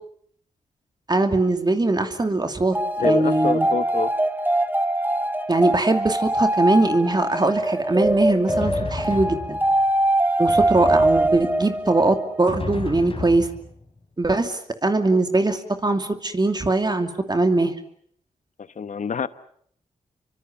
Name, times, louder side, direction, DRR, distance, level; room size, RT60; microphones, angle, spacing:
voice 1, 1.1-3.7 5.5-9.6 10.4-13.5 14.2-17.7, right 2 dB, 30° right, 6 dB, 2.6 m, -21 dB
sound 1, 2.7-12.5, right 1 dB, 15° right, 1.9 m, -23 dB
voice 2, 3.0-4.1 18.8-19.3, left 6 dB, 60° left, 14 dB, 1.2 m, -26 dB
Drum, 8.0-9.9 10.5-11.8 12.5-14.0, left 3 dB, 40° left, 4.2 m, -33 dB
28.0 x 24.5 x 7.2 m, 0.64 s
cardioid pair, 55°, 14 cm